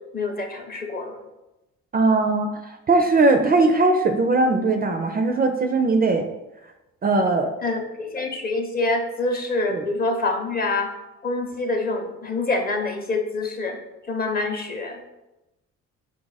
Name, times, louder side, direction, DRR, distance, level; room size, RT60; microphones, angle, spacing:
voice 1, 0.1-1.2 7.6-10.9 11.2-13.8 14.1-15.0, left 2 dB, 30° left, 4 dB, 0.7 m, -26 dB
voice 2, 1.9-6.3 7.0-7.5 9.7-9.8, right 3 dB, 30° right, 5 dB, 0.4 m, -20 dB
4.4 x 2.4 x 4.0 m, 0.97 s
cardioid pair, 90°, 30 cm